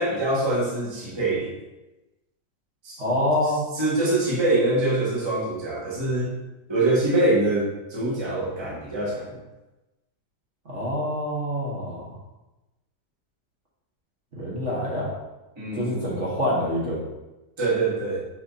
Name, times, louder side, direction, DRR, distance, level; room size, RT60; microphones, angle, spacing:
voice 1, 0.0-1.5 2.8-3.0 3.7-6.4 6.7-9.4 15.6-16.0 17.6-18.2, right 2 dB, 15° right, -6 dB, 1.3 m, -24 dB
voice 2, 3.0-3.7 10.7-12.1 14.3-15.1 15.7-17.0, left 1 dB, 45° right, -6 dB, 1.7 m, -26 dB
5.2 x 4.4 x 4.1 m, 1.0 s
omnidirectional pair, 1.9 m